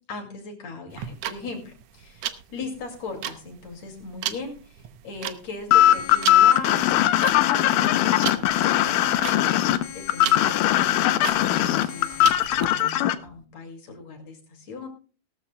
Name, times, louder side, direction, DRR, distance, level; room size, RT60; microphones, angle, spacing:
voice 1, 0.1-6.9 7.3-9.6 9.9-14.9, left 3 dB, 55° left, 3 dB, 3.3 m, -38 dB
sound 1, 0.9-12.7, right 11 dB, 75° right, 1.5 m, -35 dB
sound 2, 5.7-13.1, left 13 dB, 80° left, 2.3 m, -20 dB
18.5 x 13.5 x 2.2 m, 0.36 s
omnidirectional pair, 3.9 m